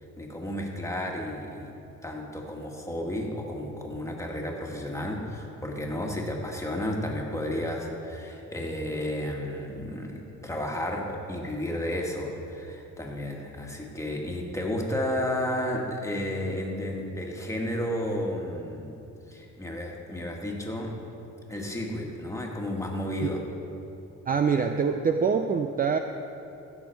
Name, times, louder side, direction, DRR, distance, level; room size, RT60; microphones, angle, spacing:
voice 1, 0.2-1.8 2.0-19.0 19.3-20.9 21.5-23.4, left 1 dB, 10° left, -1 dB, 1.7 m, -32 dB
voice 2, 24.3-26.0, right 6 dB, 30° right, 6 dB, 0.4 m, -24 dB
16.0 x 6.3 x 4.6 m, 2.9 s
cardioid pair, 90°, 30 cm